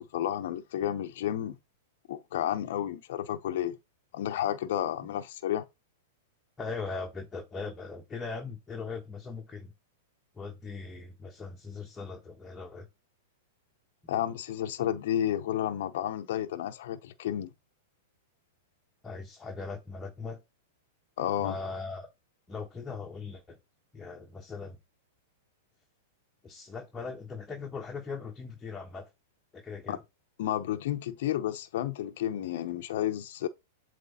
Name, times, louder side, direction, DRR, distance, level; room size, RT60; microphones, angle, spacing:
voice 1, 0.0-1.6 2.1-3.8 4.1-5.6 14.1-17.5 21.2-21.6 29.9-30.0 30.4-33.5, left 11 dB, 65° left, 0.7 m, -31 dB
voice 2, 6.6-9.7 10.4-12.9 19.0-20.4 21.4-22.1 22.5-23.6 23.9-24.8 26.4-29.1 29.5-30.0, left 4 dB, 15° left, 1.1 m, -39 dB
7.7 x 3.2 x 4.2 m
hypercardioid pair, 120°, 0 cm